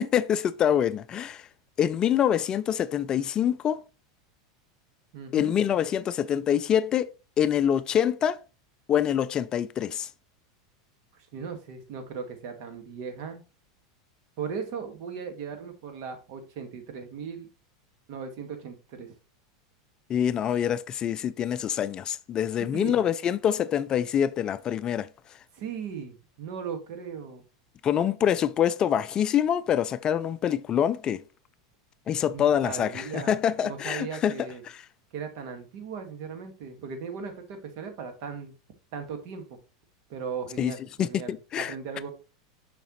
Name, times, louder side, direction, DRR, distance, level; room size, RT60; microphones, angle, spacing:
voice 1, 0.0-1.4 1.8-3.8 5.3-8.4 8.9-10.1 20.1-25.1 27.8-31.2 32.1-34.5 40.6-40.7 41.0-41.7, left 9 dB, 30° left, 0.4 m, -25 dB
voice 2, 5.1-5.6 11.3-13.4 14.4-17.5 18.1-19.1 22.7-23.0 25.5-27.4 32.3-33.3 33.6-34.6 35.1-38.5 38.9-39.4 40.1-42.1, right 6 dB, 60° right, 1.9 m, -37 dB
6.9 x 5.8 x 3.1 m
hypercardioid pair, 110°, 2 cm